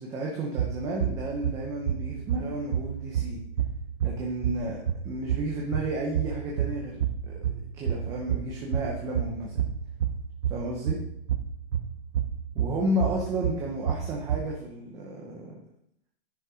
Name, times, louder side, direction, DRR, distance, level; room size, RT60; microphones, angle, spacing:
voice 1, 0.0-3.4 4.0-7.3 7.7-9.7 10.5-11.0 12.5-15.6, right 1 dB, 10° right, -2 dB, 0.7 m, -32 dB
sound 1, 0.6-14.5, right 9 dB, 60° right, 0.9 m, -30 dB
10.0 x 5.4 x 4.9 m, 0.72 s
hypercardioid pair, 165°, 31 cm